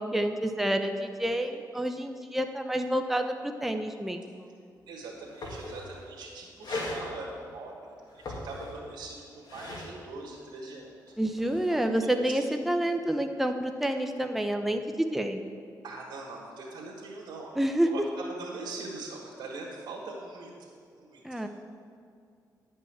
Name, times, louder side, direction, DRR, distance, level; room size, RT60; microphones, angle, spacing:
voice 1, 0.0-4.5 11.2-15.4 17.6-17.9 21.2-21.5, right 1 dB, 5° right, 5 dB, 0.6 m, -29 dB
sound 1, 4.8-4.9 5.1-6.1 6.6-7.0 8.0-9.0 9.3-9.9 11.1-11.8, left 2 dB, 70° left, 2.2 m, -38 dB
voice 2, 4.9-10.9 12.3-12.4 15.8-20.5 20.9-21.5, right 3 dB, 85° right, -3 dB, 1.6 m, -42 dB
10.5 x 5.4 x 7.9 m, 2.4 s
cardioid pair, 85°, 7 cm